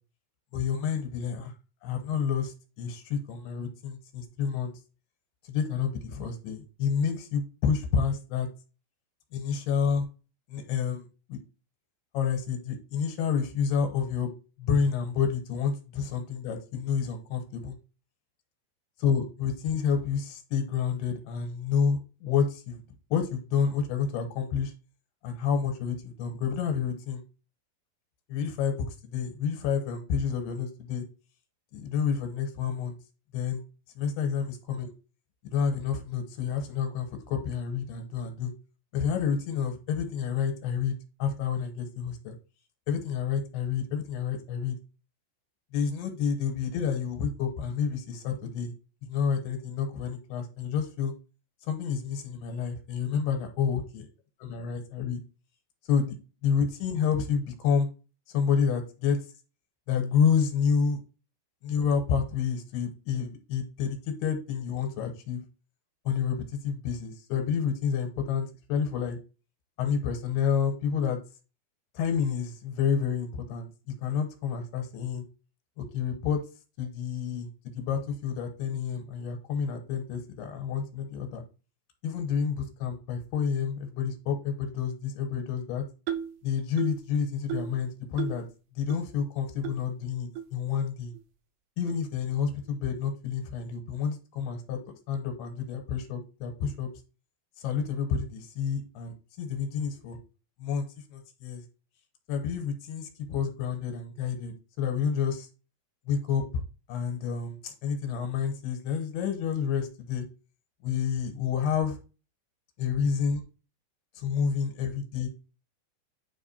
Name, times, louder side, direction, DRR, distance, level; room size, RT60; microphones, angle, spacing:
voice 1, 0.5-1.5 1.8-4.7 5.4-8.5 9.3-10.1 10.5-11.0 11.3-11.4 12.1-14.3 14.6-17.8 19.0-22.8 23.1-24.7 25.2-27.2 28.3-31.0 31.7-33.0 33.3-33.6 34.0-34.9 35.4-38.5 38.9-42.3 42.9-44.8 45.7-48.7 49.1-51.1 51.7-54.0 54.4-55.2 55.9-56.2 56.4-57.9 58.3-59.2 59.9-61.0 61.6-65.4 66.1-69.2 69.8-71.2 71.9-73.7 74.0-75.2 75.8-76.4 76.8-77.5 77.7-81.4 82.0-85.8 86.4-88.5 88.8-91.1 91.8-96.9 97.6-100.2 100.6-101.6 102.3-105.5 106.1-106.4 106.9-110.2 110.8-112.0 112.8-113.4 114.2-115.3, left 6 dB, 80° left, 5 dB, 2.9 m, -29 dB
sound 1, 86.1-86.4 86.8-87.1 87.5-87.8 88.2-88.5 88.9-89.0 89.6-89.8 90.4-90.5 91.1-91.2 91.9-92.0, right 10 dB, 80° right, 2.8 m, -34 dB
9.8 x 3.4 x 4.2 m, 0.33 s
omnidirectional pair, 4.7 m